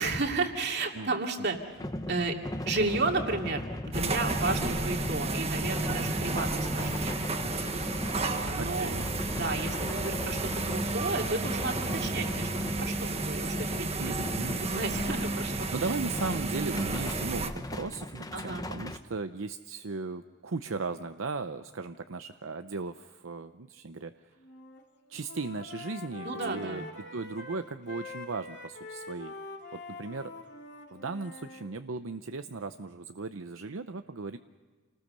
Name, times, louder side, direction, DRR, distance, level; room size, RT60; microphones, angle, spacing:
voice 1, 0.0-1.6 2.1-2.4 2.7-7.2 8.1-8.9 9.3-14.2 14.6-16.0 18.3-18.7 26.2-26.9, right 3 dB, 55° right, 2 dB, 2.6 m, -33 dB
sound 1, 1.5-15.8 16.1-19.0, left 1 dB, 20° left, 0.9 m, -38 dB
sound 2, 3.9-17.5, right 3 dB, 30° right, 1.4 m, -32 dB
voice 2, 8.6-9.1 14.0-14.6 15.7-24.3 25.1-26.9 27.1-29.3 29.7-30.3 30.9-34.4, right 3 dB, 75° right, 8 dB, 0.7 m, -37 dB
Wind instrument woodwind instrument, 24.4-24.8 25.1-31.7, left 3 dB, 55° left, 3.4 m, -45 dB
28.5 x 19.5 x 6.7 m, 1.5 s
head